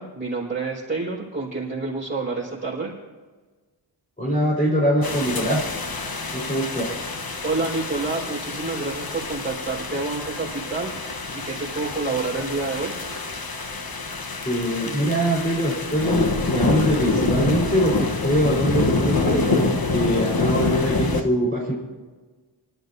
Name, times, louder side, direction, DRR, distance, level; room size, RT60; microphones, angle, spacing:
voice 1, 0.0-2.9 7.4-10.9 11.3-12.9, right 3 dB, 20° right, -9 dB, 4.9 m, -28 dB
voice 2, 4.2-5.7 6.3-7.0 14.4-21.7, equal, 15° left, -6 dB, 4.4 m, -23 dB
sound 1, 5.0-21.2, left 3 dB, 50° left, 1.2 m, -26 dB
24.5 x 13.0 x 2.8 m, 1.3 s
wide cardioid pair, 85°, 45 cm